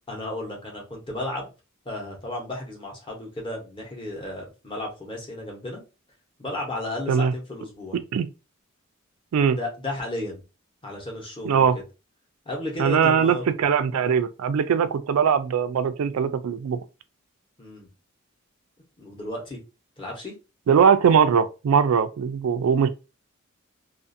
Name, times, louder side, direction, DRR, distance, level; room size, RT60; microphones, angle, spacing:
voice 1, 0.1-1.5 1.8-5.8 6.4-8.0 9.5-10.4 10.8-11.7 12.4-13.4 17.6-17.9 19.0-19.6 20.0-20.3, left 1 dB, 25° left, 0.9 m, -33 dB
voice 2, 11.4-11.8 12.8-16.8 20.7-22.9, right 7 dB, 90° right, 0.3 m, -21 dB
2.5 x 2.4 x 2.6 m
head